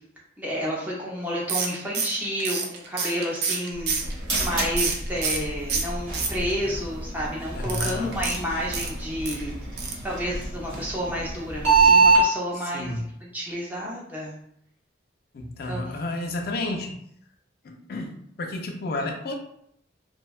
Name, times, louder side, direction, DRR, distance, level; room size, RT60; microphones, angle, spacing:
voice 1, 0.4-9.5 10.0-14.4 15.7-16.1, equal, 10° right, -5 dB, 0.6 m, -30 dB
sound 1, 1.5-5.4 5.7-6.7 7.6-9.4 9.8-10.1 10.4-10.5 10.7-10.8, right 5 dB, 55° right, 0.4 m, -28 dB
sound 2, 3.7-12.2, right 3 dB, 85° right, 1.1 m, -25 dB
voice 2, 7.5-8.1 12.7-13.0 15.3-17.0 17.6-18.1 18.4-19.3, left 2 dB, 50° left, 3 dB, 0.4 m, -31 dB
2.7 x 2.1 x 2.3 m, 0.71 s
head